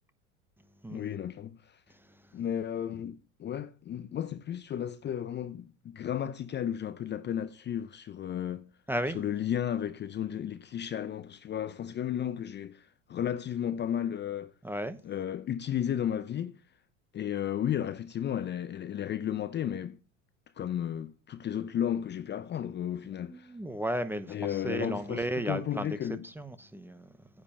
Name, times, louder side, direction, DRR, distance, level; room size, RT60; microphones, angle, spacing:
voice 1, 0.9-1.8 2.3-8.7 9.1-14.5 15.0-16.6 17.1-20.0 20.6-23.5 24.3-26.3, left 10 dB, 25° left, 0.6 m, -33 dB
voice 2, 1.9-2.4 8.9-9.2 14.6-15.0 23.2-26.0 26.2-27.3, right 1 dB, 5° right, 0.7 m, -35 dB
9.8 x 5.2 x 6.9 m
hypercardioid pair, 90°, 39 cm